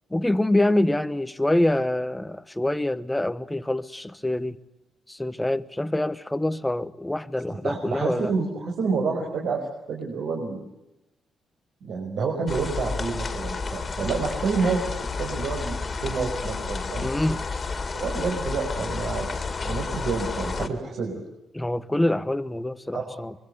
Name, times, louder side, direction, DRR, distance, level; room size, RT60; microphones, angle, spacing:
voice 1, 0.1-4.6 5.1-8.3 17.0-17.4 20.6-20.7 21.5-23.3, left 1 dB, 5° left, 1.0 m, -25 dB
voice 2, 7.6-10.7 11.8-17.1 17.9-19.3 19.6-21.2 22.9-23.2, right 4 dB, 65° right, 5.7 m, -28 dB
sound 1, 12.5-20.7, left 4 dB, 30° left, 2.4 m, -31 dB
26.0 x 23.5 x 8.2 m
cardioid pair, 145°, 0 cm